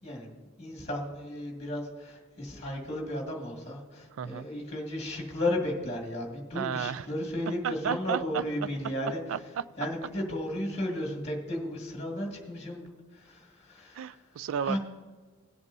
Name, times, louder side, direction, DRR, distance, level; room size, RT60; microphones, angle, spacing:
voice 1, 0.0-9.2 9.8-14.2 14.6-14.8, left 1 dB, 30° left, 0 dB, 2.0 m, -34 dB
voice 2, 4.2-4.5 6.5-7.1 7.6-8.7 9.3-9.6 13.9-14.8, right 8 dB, 75° right, 16 dB, 0.3 m, -33 dB
18.0 x 7.9 x 2.7 m, 1.5 s
head